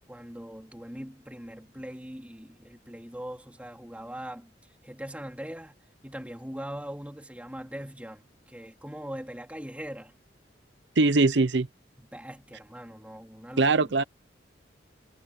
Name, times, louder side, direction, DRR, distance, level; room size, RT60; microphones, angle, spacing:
voice 1, 0.1-4.5 4.8-5.8 6.0-8.2 8.5-10.1 12.0-13.9, equal, 10° right, 3.7 m, -41 dB
voice 2, 11.0-11.7 13.6-14.0, right 3 dB, 75° right, 0.7 m, -21 dB
head